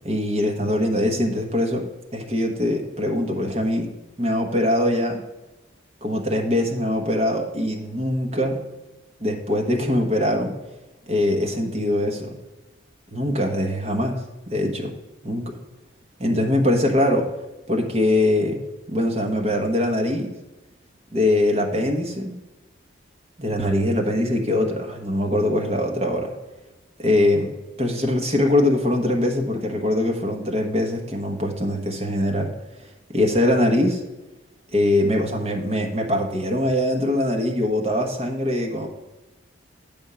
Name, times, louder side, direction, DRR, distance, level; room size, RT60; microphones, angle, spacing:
voice 1, 0.0-3.9 4.2-5.2 6.0-8.6 9.2-10.6 11.1-12.4 13.1-14.2 14.5-14.9 15.2-15.5 16.2-17.3 17.7-18.6 18.9-20.3 21.1-22.3 23.4-26.3 27.0-27.5 27.8-32.5 33.1-34.0 34.7-38.9, left 1 dB, 30° right, 2 dB, 1.0 m, -22 dB
8.5 x 3.5 x 6.8 m, 1.1 s
head